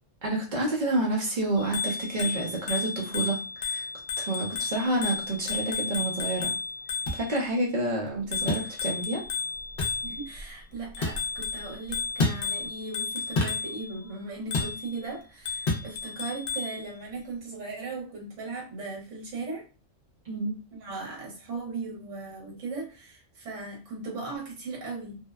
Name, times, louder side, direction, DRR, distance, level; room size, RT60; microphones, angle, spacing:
voice 1, 0.2-3.9 4.2-6.5 7.1-9.2 20.3-20.6, right 2 dB, 45° right, -1 dB, 0.7 m, -29 dB
Bicycle bell, 1.6-7.4 8.3-10.4 10.9-13.9 14.5-14.9 15.5-16.8, left 5 dB, 85° left, 0.9 m, -33 dB
sound 1, 7.1-7.2 8.5-8.7 9.8-10.0 11.0-11.2 12.2-12.4 13.4-13.6 14.5-14.8 15.7-15.9, left 2 dB, 55° left, 0.8 m, -27 dB
voice 2, 10.0-19.7 20.7-25.2, right 3 dB, 75° right, -2 dB, 1.2 m, -38 dB
2.7 x 2.1 x 2.2 m, 0.32 s
omnidirectional pair, 1.3 m